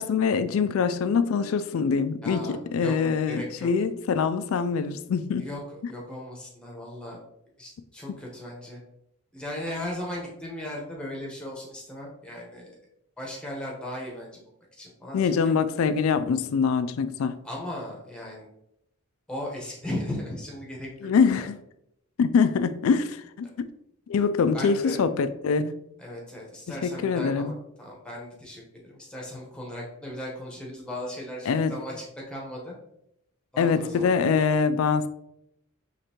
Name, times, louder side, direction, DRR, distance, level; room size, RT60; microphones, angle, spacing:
voice 1, 0.0-5.5 15.1-17.4 21.0-21.6 22.2-23.7 24.1-25.8 26.8-27.5 31.5-31.7 33.6-35.1, left 5 dB, 70° left, 0.3 m, -24 dB
voice 2, 2.2-2.9 3.3-3.7 5.4-7.2 7.6-8.8 9.3-12.8 13.2-14.4 14.7-15.5 17.4-18.5 19.3-20.9 21.4-21.5 24.5-25.0 26.0-32.7 33.5-34.1, left 1 dB, 5° left, 1.0 m, -37 dB
5.1 x 3.2 x 2.9 m
head